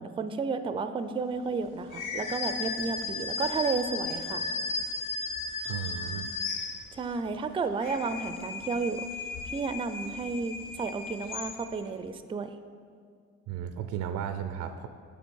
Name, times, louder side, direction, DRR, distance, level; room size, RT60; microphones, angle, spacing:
voice 1, 0.0-4.5 6.9-9.1 9.5-12.6, right 4 dB, 20° right, 10 dB, 0.3 m, -32 dB
sound 1, 1.9-7.2 7.6-11.9, left 4 dB, 85° left, 0.7 m, -35 dB
voice 2, 5.7-6.3 13.5-14.9, right 9 dB, 85° right, 9 dB, 0.5 m, -34 dB
6.9 x 5.9 x 4.6 m, 2.1 s
cardioid pair, 90°, 30 cm